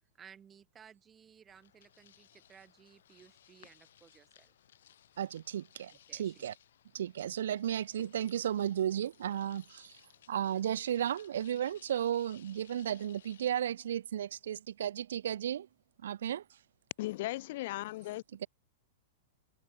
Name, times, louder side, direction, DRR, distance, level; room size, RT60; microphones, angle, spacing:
voice 1, 0.2-4.5 6.1-6.4, right 8 dB, 15° right, 2.6 m, -58 dB
sound 1, 1.5-13.5, left 10 dB, 80° left, 3.5 m, -62 dB
voice 2, 5.2-6.5 6.9-10.0 10.3-15.7 16.0-16.4 18.4-18.5, right 10 dB, 85° right, 0.8 m, -34 dB
voice 3, 17.0-18.2, left 17 dB, 45° left, 0.5 m, -37 dB
supercardioid pair, 175°, 0 cm